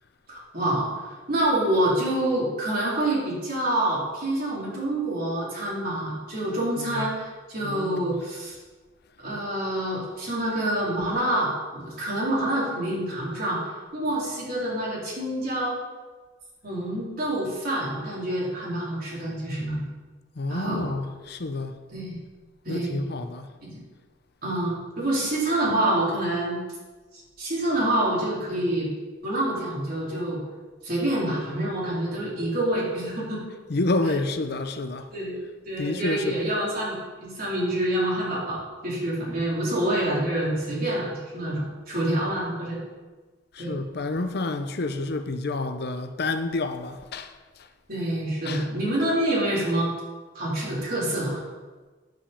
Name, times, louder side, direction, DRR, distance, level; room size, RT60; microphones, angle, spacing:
voice 1, 0.3-0.9 1.3-8.6 9.2-15.8 16.6-19.8 20.5-20.9 21.9-22.2 22.7-23.0 23.6-23.7 24.4-26.6 27.4-28.9 29.2-30.4 30.8-33.4 35.1-35.4 35.7-37.0 37.2-42.8 43.6-43.7 47.9-49.9 50.3-51.4, right 1 dB, 50° right, 3.6 m, -27 dB
voice 2, 7.6-8.2 20.4-21.7 22.7-23.5 33.7-35.1 35.8-36.4 43.6-47.3 48.5-48.6, left 2 dB, 55° left, 0.6 m, -29 dB
9.2 x 5.3 x 7.1 m
head